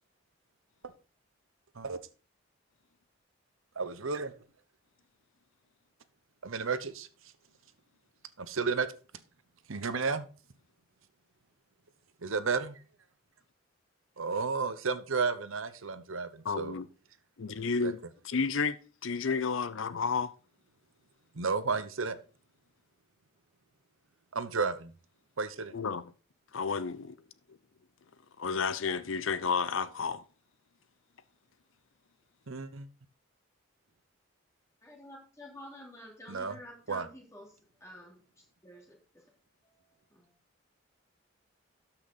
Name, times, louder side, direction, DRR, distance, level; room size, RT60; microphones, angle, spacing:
voice 1, 3.8-4.3 6.4-7.1 8.4-8.9 9.7-10.2 12.2-12.8 14.2-16.7 17.8-17.9 21.4-22.2 24.3-24.9 25.4-25.7 32.5-32.9 36.3-36.6 36.9-37.1, right 4 dB, 75° right, 0.9 m, -32 dB
voice 2, 16.4-16.9 17.4-18.0 18.2-18.8 19.0-20.3 25.7-26.0 26.5-27.1 28.4-30.2, left 5 dB, 70° left, 0.6 m, -31 dB
voice 3, 34.8-38.2 38.6-39.2 39.6-40.3, left 1 dB, 15° left, 3.2 m, -50 dB
13.0 x 5.9 x 4.1 m
head